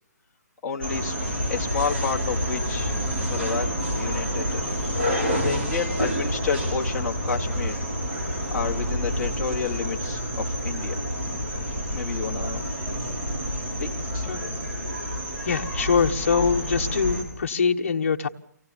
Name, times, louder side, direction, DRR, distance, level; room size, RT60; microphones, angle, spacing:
voice 1, 0.6-1.1 1.5-3.7 4.0-4.7 5.1-7.8 8.5-11.0 11.9-12.6 13.8-14.6, left 6 dB, 5° left, -6 dB, 1.4 m, -31 dB
sound 1, 0.8-17.2, equal, 40° right, 7.1 m, -28 dB
voice 2, 15.4-18.3, left 5 dB, 45° left, 4 dB, 1.3 m, -23 dB
25.0 x 18.0 x 7.1 m, 0.67 s
hypercardioid pair, 180°, 10 cm